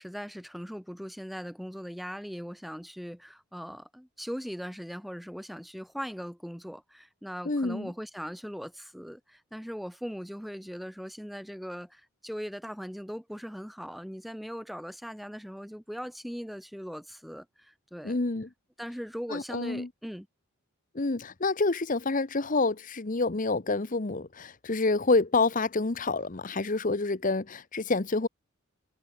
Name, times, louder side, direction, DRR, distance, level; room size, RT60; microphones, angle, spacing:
voice 1, 0.0-18.2 18.8-20.3, equal, ahead, 3.0 m, -40 dB
voice 2, 7.4-7.9 18.0-18.5 19.3-19.9 20.9-28.3, left 3 dB, 35° left, 0.8 m, -28 dB
head